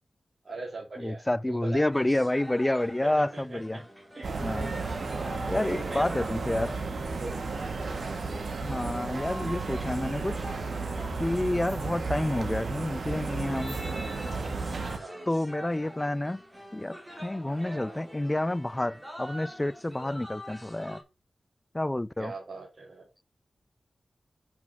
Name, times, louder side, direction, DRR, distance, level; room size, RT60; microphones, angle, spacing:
voice 1, 0.4-1.9 3.0-3.8 4.1-4.8 5.5-6.1 6.5-6.7 7.2-7.4 15.0-15.3 22.2-23.1, right 3 dB, 45° right, 2.6 m, -41 dB
voice 2, 1.0-3.8 4.4-4.7 5.5-6.7 8.6-10.4 11.2-13.8 15.3-16.4 16.7-21.0 21.7-22.3, left 1 dB, 15° left, 0.4 m, -29 dB
sound 1, 1.9-21.0, equal, 10° right, 2.7 m, -45 dB
sound 2, 4.2-15.0, right 3 dB, 65° right, 1.4 m, -33 dB
6.2 x 5.6 x 6.0 m
wide cardioid pair, 90°, 0 cm